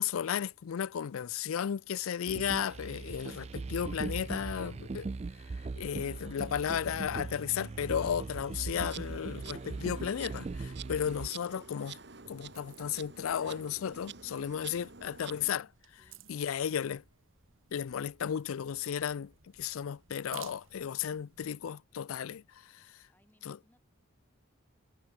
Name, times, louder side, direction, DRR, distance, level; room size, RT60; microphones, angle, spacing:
voice 1, 0.0-5.1 5.8-12.0 12.3-15.7 16.3-17.0 17.7-19.3 19.6-22.9 23.5-23.6, left 8 dB, 90° left, 0.4 m, -34 dB
sound 1, 2.3-11.3, right 3 dB, 30° right, 0.3 m, -40 dB
Insect, 8.8-15.5, right 6 dB, 55° right, 1.8 m, -49 dB
sound 2, 11.0-21.5, right 10 dB, 80° right, 3.7 m, -57 dB
voice 2, 16.0-17.0 23.1-23.8, left 1 dB, 10° left, 6.4 m, -69 dB
head